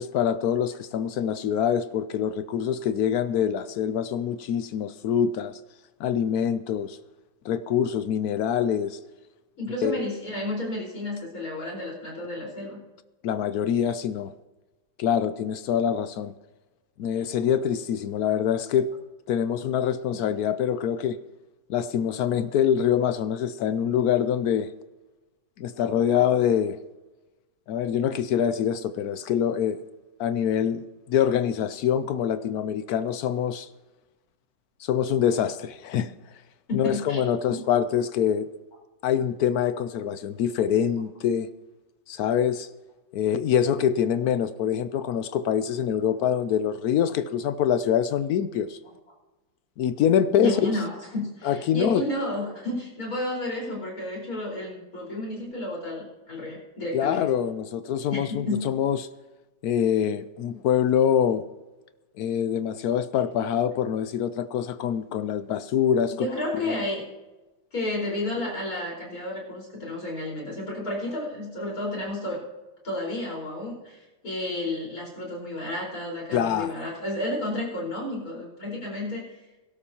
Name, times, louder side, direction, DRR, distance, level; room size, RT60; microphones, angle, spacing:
voice 1, 0.0-5.6 6.0-7.0 7.4-9.0 9.8-10.0 13.2-14.3 15.0-16.3 17.0-18.9 19.3-21.2 21.7-24.7 25.6-26.8 27.7-29.8 30.2-33.7 34.8-36.1 36.7-38.5 39.0-41.5 42.1-42.7 43.1-48.8 49.8-50.7 51.4-52.0 56.9-59.1 59.6-61.5 62.2-66.3 66.7-66.8 76.3-76.7, left 9 dB, 70° left, 0.9 m, -25 dB
voice 2, 9.6-12.8 36.7-37.2 37.5-37.6 50.4-57.3 58.1-58.7 66.2-67.1 67.7-72.4 72.8-79.3, left 1 dB, 50° left, 5.1 m, -31 dB
22.0 x 12.0 x 2.9 m
omnidirectional pair, 2.0 m